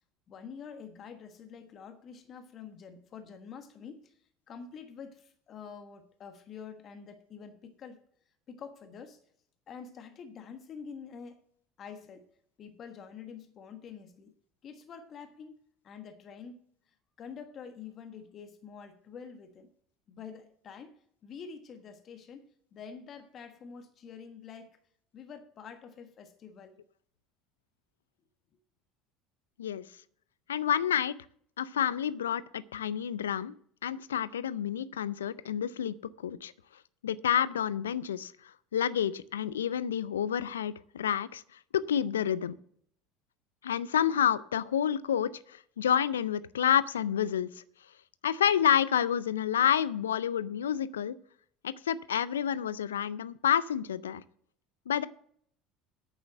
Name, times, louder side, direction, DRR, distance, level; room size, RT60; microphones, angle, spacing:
voice 1, 0.3-4.1 4.5-8.0 8.5-9.2 9.7-11.4 11.8-12.3 12.6-14.3 14.6-15.6 15.8-16.6 17.2-19.7 20.1-24.8 25.1-26.8, left 6 dB, 45° left, 8 dB, 1.3 m, -47 dB
voice 2, 30.5-31.2 31.6-33.5 33.8-35.9 36.2-36.5 37.0-38.3 38.7-41.4 41.7-42.5 43.6-47.5 48.2-51.1 51.6-54.2 54.9-55.1, left 9 dB, 85° left, 18 dB, 0.4 m, -29 dB
9.3 x 6.9 x 7.7 m, 0.64 s
hypercardioid pair, 70°, 0 cm